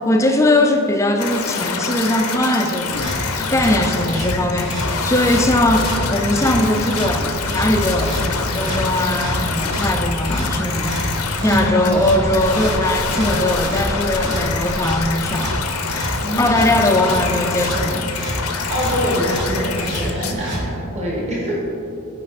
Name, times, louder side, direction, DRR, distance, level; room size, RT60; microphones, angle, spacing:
voice 1, 0.1-11.1 11.4-15.6 16.4-18.1, left 1 dB, 15° left, 4 dB, 0.3 m, -20 dB
sound 1, 1.2-20.3, left 5 dB, 90° left, 0.6 m, -26 dB
sound 2, 2.8-20.6, right 1 dB, 55° right, 1.4 m, -28 dB
sound 3, 3.5-15.1, equal, 5° right, 1.0 m, -31 dB
voice 2, 3.7-4.1 11.4-11.8 16.2-16.6 18.7-21.6, equal, 30° right, -5 dB, 1.4 m, -24 dB
8.4 x 4.8 x 4.1 m, 2.6 s
head